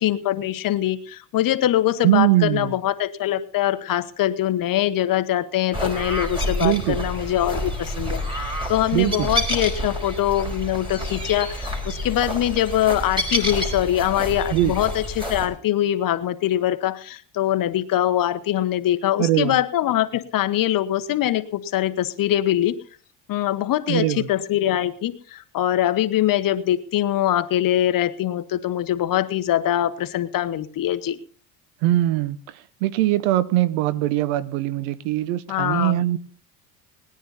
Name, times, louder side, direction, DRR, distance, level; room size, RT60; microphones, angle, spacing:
voice 1, 0.0-22.8 23.3-31.2 35.5-36.0, left 12 dB, 50° left, 11 dB, 1.2 m, -23 dB
voice 2, 2.0-2.7 6.6-7.0 8.9-9.3 14.5-14.7 19.2-19.6 23.9-24.3 31.8-32.4 32.8-36.2, right 15 dB, 90° right, 19 dB, 0.9 m, -21 dB
sound 1, 5.7-15.5, equal, 10° right, 4.2 m, -28 dB
19.0 x 10.0 x 4.1 m, 0.42 s
supercardioid pair, 100°, 42 cm